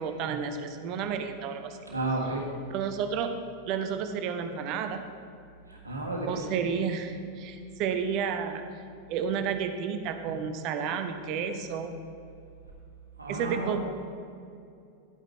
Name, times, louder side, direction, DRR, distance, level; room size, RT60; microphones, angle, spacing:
voice 1, 0.0-1.8 2.7-3.3 3.7-5.1 6.3-8.6 9.1-11.9 13.3-13.8, right 7 dB, 40° right, 8 dB, 0.8 m, -31 dB
voice 2, 1.9-2.4 5.7-6.6 13.2-13.8, right 2 dB, 80° right, -1 dB, 1.5 m, -32 dB
11.0 x 8.9 x 3.3 m, 2.4 s
figure-of-eight pair, 90°, 0 cm